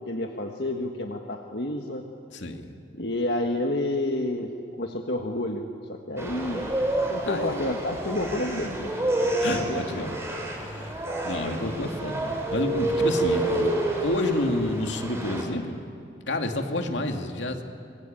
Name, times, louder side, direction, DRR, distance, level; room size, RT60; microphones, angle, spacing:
voice 1, 0.0-2.1 2.9-4.5 4.8-5.6 5.9-6.7 7.1-9.0 9.6-10.1, left 1 dB, 65° left, 3 dB, 1.6 m, -29 dB
voice 2, 2.3-2.7 7.2-7.8 9.2-11.0 11.2-12.2 12.5-15.8 16.3-17.6, left 1 dB, 85° left, 4 dB, 2.5 m, -29 dB
sound 1, 6.2-15.4, right 1 dB, 15° right, 4.3 m, -28 dB
26.5 x 22.5 x 9.1 m, 2.4 s
head